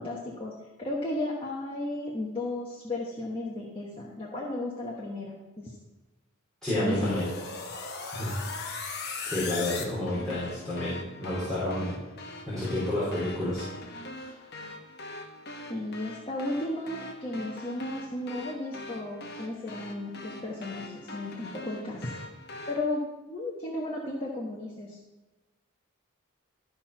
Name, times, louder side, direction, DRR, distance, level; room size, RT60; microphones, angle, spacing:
voice 1, 0.0-5.8 6.8-7.2 15.7-22.1 22.7-25.0, left 2 dB, 25° left, -3 dB, 1.1 m, -34 dB
voice 2, 6.6-7.3 8.1-8.3 9.3-12.0 12.5-13.7 14.1-14.3, left 1 dB, ahead, -13 dB, 3.5 m, -30 dB
sound 1, 6.9-22.8, left 3 dB, 50° left, 1.1 m, -41 dB
13.0 x 4.4 x 5.9 m, 1.1 s
head